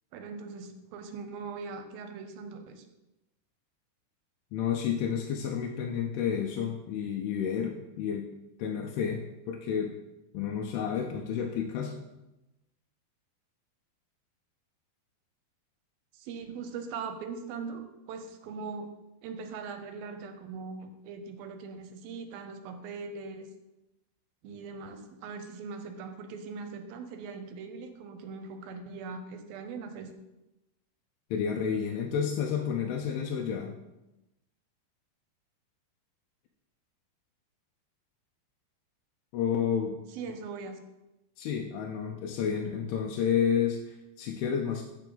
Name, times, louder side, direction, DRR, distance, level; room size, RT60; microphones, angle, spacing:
voice 1, 0.1-2.9 16.1-19.0 19.2-23.5 24.4-30.1 40.1-40.8, right 5 dB, 75° right, 7 dB, 2.4 m, -41 dB
voice 2, 4.5-8.3 8.6-9.9 10.3-11.9 31.3-33.7 39.3-40.0 41.4-44.8, left 7 dB, 80° left, 1 dB, 2.6 m, -30 dB
9.0 x 7.0 x 3.9 m, 0.96 s
omnidirectional pair, 4.5 m